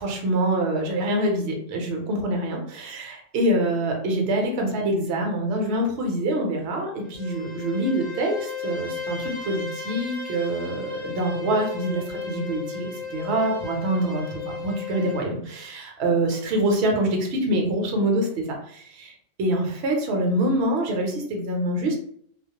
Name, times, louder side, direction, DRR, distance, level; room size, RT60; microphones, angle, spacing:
voice 1, 0.0-19.1 19.4-21.9, right 1 dB, 65° right, 1 dB, 0.9 m, -25 dB
Bowed string instrument, 7.0-15.3, left 5 dB, 30° left, 0.6 m, -35 dB
2.3 x 2.0 x 2.8 m, 0.62 s
omnidirectional pair, 1.3 m